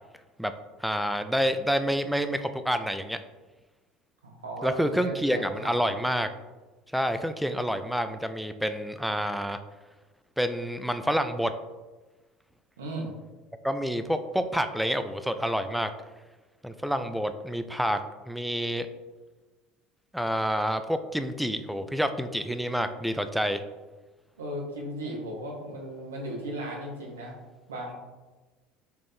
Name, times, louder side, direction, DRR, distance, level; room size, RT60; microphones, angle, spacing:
voice 1, 0.8-3.2 4.6-6.3 6.9-9.6 10.4-11.5 13.6-15.9 16.6-18.0 18.3-18.9 20.1-23.6, equal, ahead, 9 dB, 0.3 m, -28 dB
voice 2, 4.2-5.8 12.8-13.1 24.4-27.4 27.7-27.9, right 1 dB, 80° right, -1 dB, 0.8 m, -36 dB
4.4 x 2.5 x 3.5 m, 1.2 s
figure-of-eight pair, 65°, 0 cm